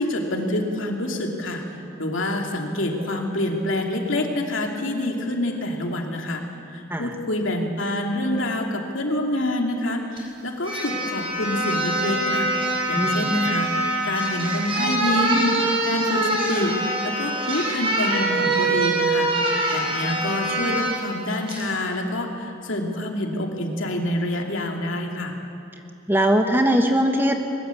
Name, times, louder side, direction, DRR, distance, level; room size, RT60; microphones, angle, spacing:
voice 1, 0.0-6.4 6.7-13.7 14.0-16.8 17.0-25.3, left 1 dB, 65° left, 1 dB, 2.9 m, -27 dB
sound 1, 10.2-10.3 10.6-21.0 21.5-21.7, right 2 dB, 25° right, 4.8 m, -24 dB
voice 2, 12.9-13.3 26.1-27.4, equal, 10° right, 4 dB, 1.3 m, -20 dB
21.5 x 21.0 x 8.5 m, 2.7 s
head